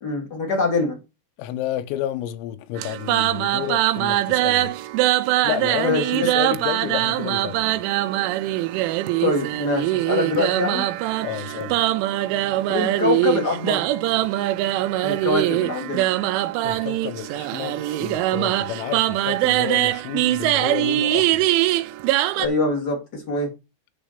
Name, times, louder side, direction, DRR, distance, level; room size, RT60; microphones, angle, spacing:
voice 1, 0.0-1.0 5.8-6.3 9.2-10.8 12.7-13.8 15.0-16.1 22.4-23.5, left 3 dB, 30° left, 1.9 m, -24 dB
voice 2, 1.4-4.7 5.4-7.8 11.2-11.8 16.6-21.5, left 12 dB, 85° left, 3.5 m, -30 dB
sound 1, 2.8-22.5, right 16 dB, 80° right, 2.9 m, -22 dB
10.0 x 4.1 x 6.6 m
omnidirectional pair, 6.0 m